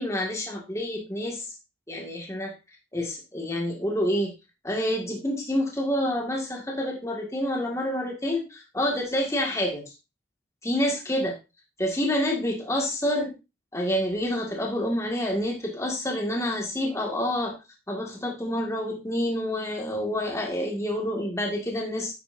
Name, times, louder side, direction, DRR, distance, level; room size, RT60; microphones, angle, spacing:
voice 1, 0.0-1.5 1.9-2.5 2.9-4.3 4.6-9.8 10.6-11.3 11.8-13.3 13.7-17.6 17.9-22.1, left 1 dB, 15° left, 0 dB, 2.0 m, -28 dB
9.9 x 8.9 x 2.7 m, 0.27 s
head